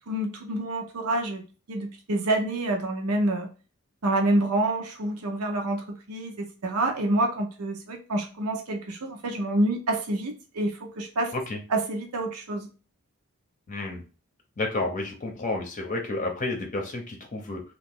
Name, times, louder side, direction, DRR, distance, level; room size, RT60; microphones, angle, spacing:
voice 1, 0.1-1.4 1.7-3.5 4.0-11.3 11.7-12.7, right 1 dB, 80° right, 3 dB, 0.7 m, -27 dB
voice 2, 13.7-14.0 14.6-17.6, left 2 dB, 35° left, 1 dB, 0.7 m, -31 dB
2.9 x 2.4 x 3.7 m, 0.35 s
head